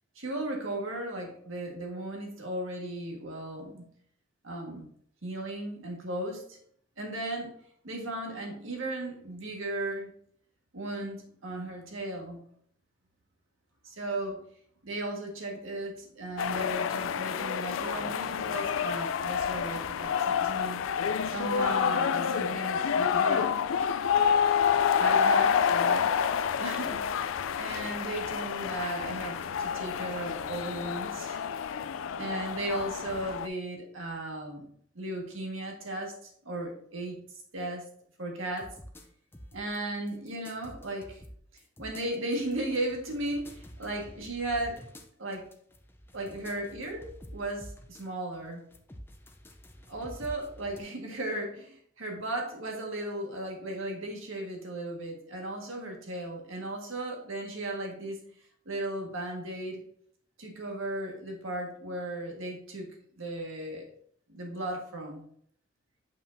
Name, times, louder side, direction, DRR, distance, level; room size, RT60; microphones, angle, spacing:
voice 1, 0.2-3.9 4.4-4.9 5.2-6.6 7.0-7.5 7.8-10.1 10.7-12.4 13.8-14.4 14.8-20.8 21.2-23.6 25.0-26.1 26.6-27.0 27.5-31.4 32.2-34.7 35.0-37.2 37.5-37.9 38.2-38.8 39.5-41.2 41.8-44.8 45.2-45.5 46.1-48.6 49.9-58.2 58.7-59.8 60.4-63.9 64.3-65.3, right 1 dB, 80° right, 1 dB, 1.6 m, -36 dB
sound 1, 16.4-33.5, left 7 dB, 80° left, 0.3 m, -28 dB
sound 2, 38.6-39.8 40.1-48.1 48.3-50.8, equal, 10° left, 0.5 m, -49 dB
7.2 x 5.6 x 2.6 m, 0.63 s
head